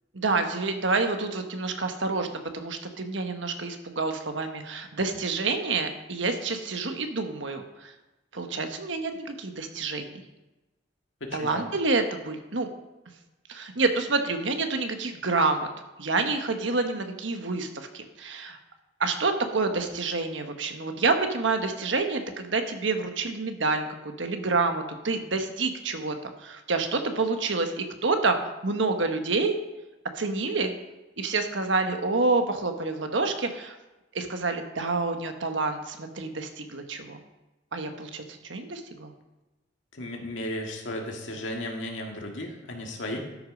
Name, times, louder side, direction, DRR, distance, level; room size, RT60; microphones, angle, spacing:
voice 1, 0.1-7.9 8.3-10.2 11.3-12.7 13.5-15.7 16.0-18.6 19.0-28.4 28.6-29.6 30.1-30.7 31.2-33.8 34.1-37.2 37.7-39.1, right 3 dB, 80° right, 6 dB, 1.2 m, -28 dB
voice 2, 11.2-11.7 39.9-43.2, left 1 dB, 85° left, 1 dB, 2.0 m, -35 dB
12.5 x 6.5 x 5.2 m, 1.1 s
head